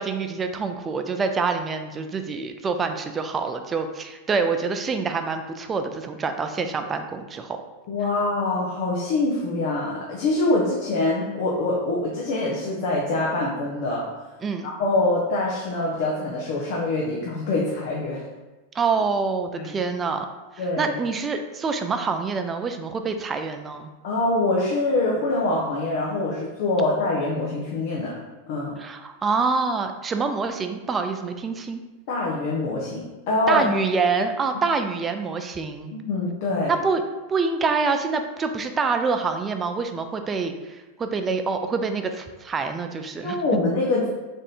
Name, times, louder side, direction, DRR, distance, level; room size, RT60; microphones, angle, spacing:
voice 1, 0.0-7.6 14.4-14.7 18.7-20.3 20.5-23.9 28.8-31.8 33.5-35.9 36.7-37.0 37.3-43.4, right 4 dB, 20° right, 7 dB, 0.3 m, -26 dB
voice 2, 7.9-14.1 14.6-18.2 19.6-19.7 20.6-20.9 24.0-28.1 28.5-28.8 32.1-33.7 35.9-36.7 43.2-44.1, left 2 dB, 60° left, -3 dB, 0.7 m, -24 dB
3.5 x 2.5 x 4.2 m, 1.1 s
hypercardioid pair, 125°, 0 cm